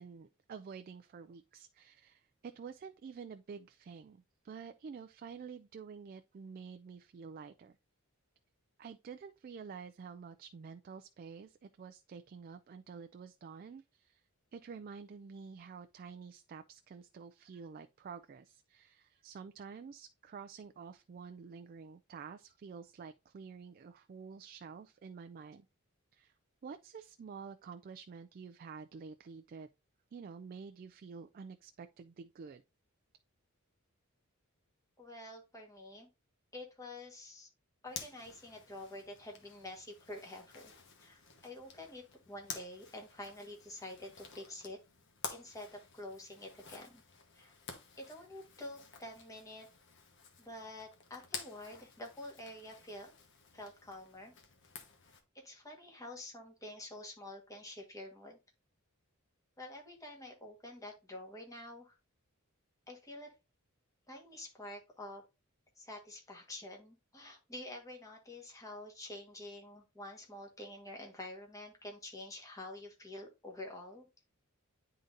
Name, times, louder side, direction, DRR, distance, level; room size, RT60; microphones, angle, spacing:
voice 1, 0.0-7.8 8.8-14.2 14.5-25.7 26.1-26.3 26.6-29.7 30.1-32.6, right 5 dB, 40° right, 0.3 m, -49 dB
voice 2, 35.0-36.1 36.5-37.5 37.8-40.7 41.0-44.8 45.3-47.0 47.3-47.6 48.0-49.7 50.4-53.1 53.5-54.3 55.3-58.4 59.6-62.0 62.9-63.3 64.1-65.2 65.8-74.1, left 1 dB, 15° left, 1.4 m, -48 dB
Zipper (clothing), 37.9-55.2, left 5 dB, 55° left, 1.1 m, -51 dB
10.0 x 3.8 x 2.6 m
head